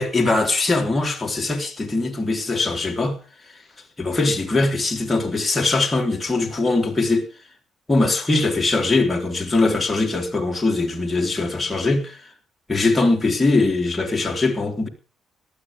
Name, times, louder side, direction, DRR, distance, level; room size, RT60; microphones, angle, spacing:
voice 1, 0.0-3.2 4.0-7.3 7.9-12.3 12.7-14.9, left 3 dB, 15° left, 3.5 m, -21 dB
18.0 x 13.0 x 3.6 m
cardioid pair, 90°, 0 cm